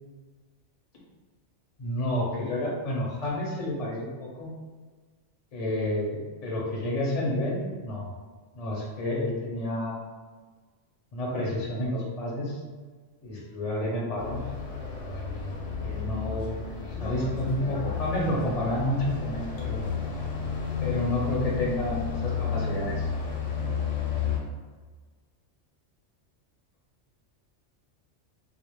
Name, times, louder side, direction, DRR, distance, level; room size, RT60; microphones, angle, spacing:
voice 1, 1.8-4.6 5.5-8.1 8.5-10.0 11.1-12.6 13.2-14.5 15.8-16.6 16.9-19.9 20.8-23.1, left 1 dB, 45° left, -4 dB, 0.5 m, -30 dB
sound 1, 14.2-24.4, left 6 dB, 80° left, 1.0 m, -32 dB
2.3 x 2.0 x 3.0 m, 1.4 s
omnidirectional pair, 1.3 m